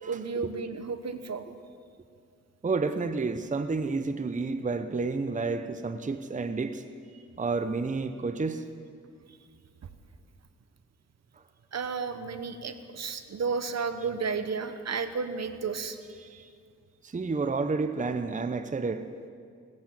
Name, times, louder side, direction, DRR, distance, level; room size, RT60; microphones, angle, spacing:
voice 1, 0.1-1.4 11.7-16.0, right 5 dB, 60° right, 10 dB, 1.1 m, -32 dB
voice 2, 2.6-6.8 7.1-8.6 16.2-16.5 17.0-19.1, right 4 dB, 25° right, 9 dB, 0.8 m, -30 dB
16.5 x 10.5 x 7.3 m, 2.2 s
cardioid pair, 65°, 30 cm